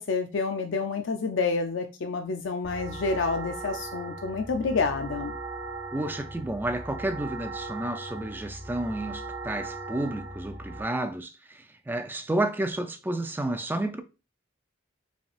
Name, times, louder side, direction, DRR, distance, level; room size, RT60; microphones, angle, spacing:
voice 1, 0.0-5.3, left 4 dB, 70° left, 0.5 m, -28 dB
sound 1, 2.6-10.8, right 2 dB, 75° right, 1.1 m, -38 dB
voice 2, 5.9-14.0, right 1 dB, 10° right, 0.4 m, -31 dB
5.1 x 3.4 x 2.4 m
head